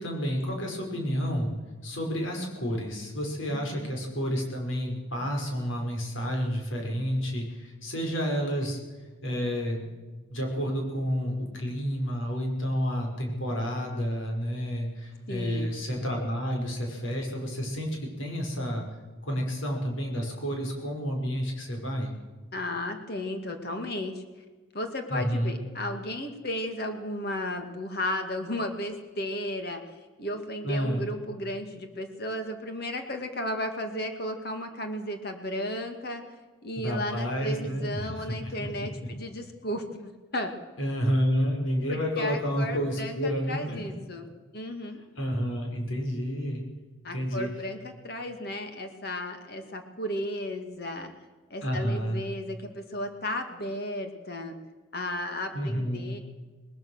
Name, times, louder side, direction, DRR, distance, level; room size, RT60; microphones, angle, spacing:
voice 1, 0.0-1.5 1.8-8.8 9.2-9.8 10.3-18.8 19.2-22.1 25.1-25.6 30.6-31.1 36.7-38.9 40.8-43.9 45.2-46.6 47.1-47.5 51.6-52.2 55.5-56.2, equal, 75° left, 1 dB, 5.7 m, -30 dB
voice 2, 3.5-3.9 15.3-15.7 22.5-24.2 24.7-29.8 30.2-36.2 36.6-40.5 41.9-44.3 44.5-45.0 47.0-51.1 51.5-54.5 54.9-56.2, left 1 dB, 50° left, 5 dB, 2.2 m, -34 dB
20.5 x 20.5 x 6.5 m, 1.3 s
head